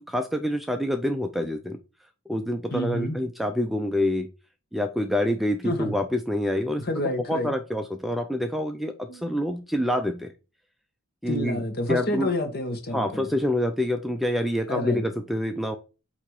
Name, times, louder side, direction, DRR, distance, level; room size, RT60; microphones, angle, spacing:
voice 1, 0.0-1.8 2.3-4.3 4.7-6.8 7.3-10.3 11.2-11.6 11.9-12.3 12.9-15.8, left 1 dB, ahead, 0.4 m, -26 dB
voice 2, 2.7-3.2 5.6-6.0 6.8-7.5 9.1-9.4 11.3-13.3 14.7-15.0, left 1 dB, 45° left, 1.2 m, -29 dB
8.3 x 2.9 x 4.6 m
head